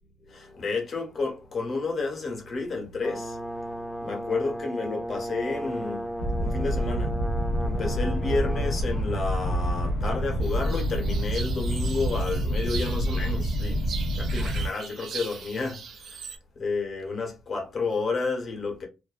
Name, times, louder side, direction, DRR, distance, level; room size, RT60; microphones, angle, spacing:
voice 1, 0.2-16.3 16.6-18.9, left 3 dB, 50° left, 1.1 m, -31 dB
Brass instrument, 3.0-8.8, right 1 dB, 5° right, 0.5 m, -35 dB
sound 1, 6.2-14.7, equal, 85° left, 0.7 m, -27 dB
sound 2, 10.4-16.4, right 6 dB, 60° right, 0.5 m, -40 dB
2.5 x 2.2 x 2.3 m
cardioid pair, 90°, 0 cm